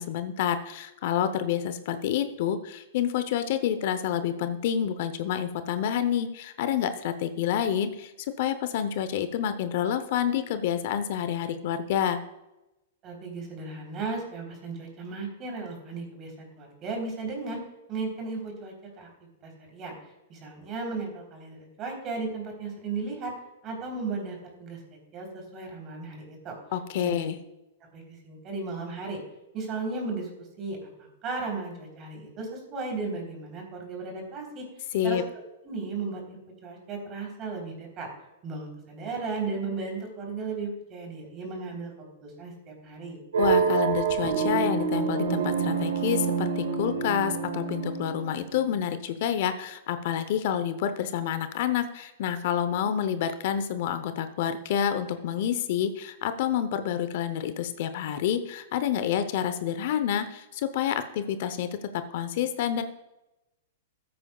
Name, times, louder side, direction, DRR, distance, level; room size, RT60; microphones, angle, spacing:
voice 1, 0.0-8.1 8.4-12.2 26.7-27.4 34.9-35.2 43.4-61.7 61.9-62.8, left 9 dB, 60° left, 10 dB, 0.8 m, -28 dB
voice 2, 13.0-17.6 17.9-19.1 19.4-19.9 20.3-23.3 23.6-24.8 25.1-26.6 26.9-27.3 27.9-29.2 29.5-30.3 30.6-34.6 35.0-35.2 35.6-38.1 38.4-43.2, right 3 dB, 35° right, 1 dB, 3.6 m, -35 dB
sound 1, 43.3-48.8, right 6 dB, 90° right, 1.7 m, -27 dB
14.0 x 8.6 x 2.3 m, 0.95 s
hypercardioid pair, 125°, 0 cm